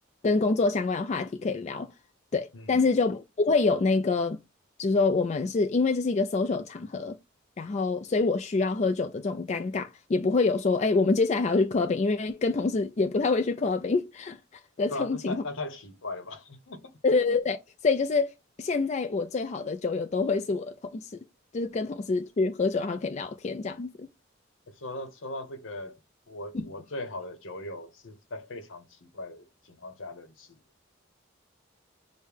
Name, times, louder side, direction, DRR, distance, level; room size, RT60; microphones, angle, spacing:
voice 1, 0.2-1.9 2.3-4.4 4.8-7.2 7.6-14.4 14.8-15.4 17.0-17.6 17.8-18.3 18.6-21.1 21.5-24.1 26.5-26.7, left 3 dB, 35° left, 0.4 m, -26 dB
voice 2, 2.5-2.9 14.9-17.0 24.7-26.0 26.3-30.6, left 2 dB, 75° left, 0.9 m, -39 dB
6.4 x 2.2 x 3.4 m
head